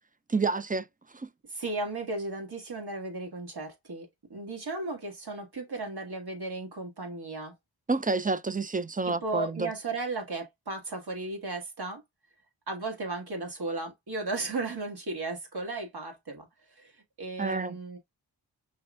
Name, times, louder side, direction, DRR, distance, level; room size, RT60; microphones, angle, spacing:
voice 1, 0.3-0.9 1.1-1.3 7.9-9.7 17.4-17.7, right 3 dB, 20° right, 0.4 m, -29 dB
voice 2, 1.5-7.5 9.1-12.0 12.7-16.5 16.8-16.9 17.2-18.0, right 3 dB, 65° right, 1.8 m, -35 dB
5.4 x 3.2 x 2.4 m
wide cardioid pair, 60°, 41 cm